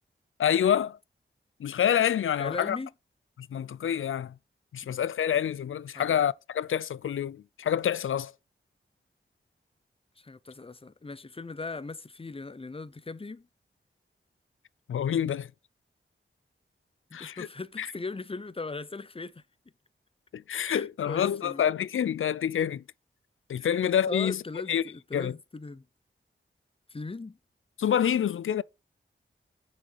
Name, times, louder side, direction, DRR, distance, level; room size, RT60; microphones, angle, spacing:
voice 1, 0.4-1.0 1.6-2.8 3.4-4.3 4.7-8.3 14.9-15.5 17.1-17.5 17.8-17.9 20.3-22.8 23.5-24.4 24.7-24.8 25.1-25.3 27.8-28.6, left 9 dB, 75° left, 0.4 m, -27 dB
voice 2, 2.4-2.9 4.8-4.9 5.9-6.2 10.2-13.5 17.1-19.4 20.6-21.7 23.6-25.9 26.9-27.4, left 3 dB, 25° left, 0.6 m, -39 dB
6.5 x 6.5 x 4.0 m
cardioid pair, 40°, 21 cm